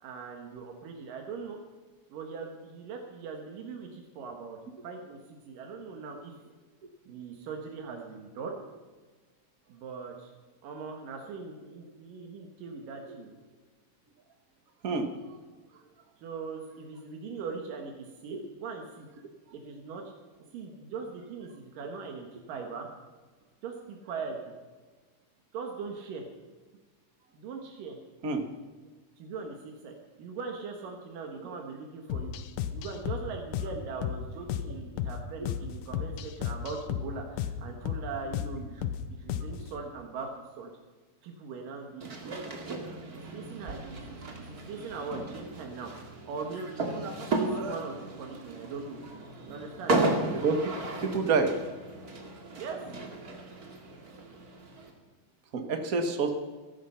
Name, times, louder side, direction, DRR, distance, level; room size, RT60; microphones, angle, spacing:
voice 1, 0.0-1.6 2.1-6.4 7.1-8.6 9.7-10.3 10.6-13.4 16.2-19.1 19.5-20.0 20.5-22.9 23.6-24.5 25.5-26.2 27.3-28.0 29.2-32.3 32.7-40.3 40.6-40.7 41.2-46.8 47.1-49.0 49.5-50.0 52.6-52.8, right 4 dB, 80° right, 2 dB, 3.1 m, -40 dB
voice 2, 14.8-15.4 18.3-18.4 28.2-28.4 31.4-31.5 50.3-50.6 51.0-51.6 55.5-56.3, right 4 dB, 55° right, 6 dB, 0.9 m, -28 dB
sound 1, 32.1-39.7, left 9 dB, 85° left, 2.5 m, -34 dB
sound 2, 42.0-54.9, right 2 dB, 30° right, 2.2 m, -35 dB
17.5 x 14.0 x 5.8 m, 1.3 s
omnidirectional pair, 3.8 m